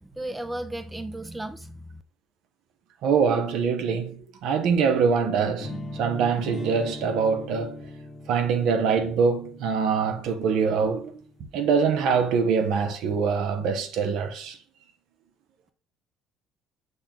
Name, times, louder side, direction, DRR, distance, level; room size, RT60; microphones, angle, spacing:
voice 1, 0.0-2.0, right 1 dB, 10° right, 0.4 m, -35 dB
voice 2, 3.0-7.8 8.3-11.2 11.5-14.6, right 6 dB, 70° right, 0.7 m, -24 dB
sound 1, 5.6-11.5, left 1 dB, 30° left, 0.9 m, -40 dB
6.5 x 2.2 x 3.7 m
cardioid pair, 100°, 0 cm